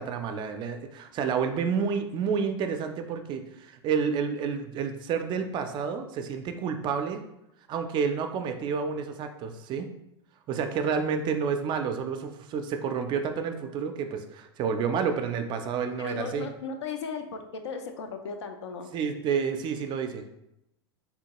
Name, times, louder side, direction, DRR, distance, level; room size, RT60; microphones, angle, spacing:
voice 1, 0.0-7.2 7.7-9.9 10.5-16.5 18.9-20.3, right 6 dB, 35° right, 7 dB, 0.3 m, -29 dB
voice 2, 16.0-18.9, left 5 dB, 80° left, 5 dB, 0.5 m, -36 dB
3.5 x 2.2 x 2.9 m, 0.85 s
hypercardioid pair, 100°, 14 cm